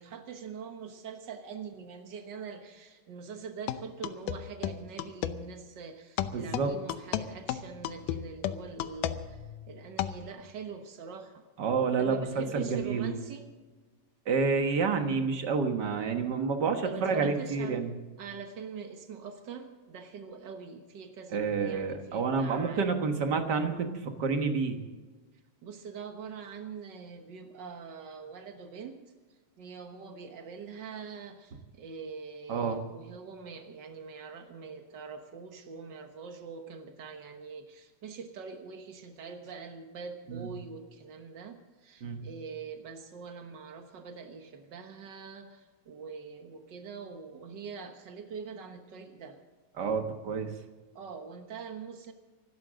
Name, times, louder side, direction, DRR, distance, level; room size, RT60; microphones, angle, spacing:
voice 1, 0.0-11.4 12.0-13.4 16.8-17.8 18.2-22.9 25.6-29.0 29.6-49.4 50.9-52.1, right 5 dB, 85° right, 5 dB, 0.9 m, -43 dB
sound 1, 3.7-5.4 6.2-10.3, left 12 dB, 80° left, 2.2 m, -33 dB
voice 2, 6.3-6.7 11.6-13.1 14.2-17.9 21.3-24.8 32.5-32.8 40.3-40.5 42.0-42.2 49.8-50.5, right 5 dB, 55° right, 5 dB, 1.2 m, -29 dB
25.5 x 13.0 x 3.8 m, 1.3 s
omnidirectional pair, 3.9 m